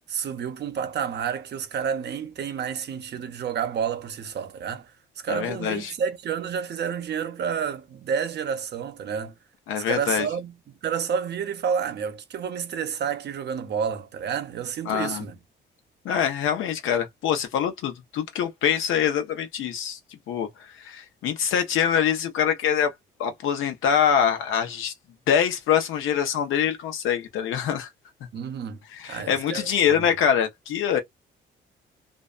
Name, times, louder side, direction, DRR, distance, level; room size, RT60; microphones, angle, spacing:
voice 1, 0.1-4.9 5.2-9.3 9.8-15.4 28.3-28.8 29.1-30.1, right 7 dB, 60° right, 0.7 m, -30 dB
voice 2, 5.3-5.9 9.7-10.3 14.9-15.2 16.0-20.0 20.3-22.9 23.2-24.9 25.3-27.9 28.9-31.0, left 8 dB, 85° left, 0.8 m, -24 dB
2.5 x 2.1 x 2.4 m
cardioid pair, 90°, 20 cm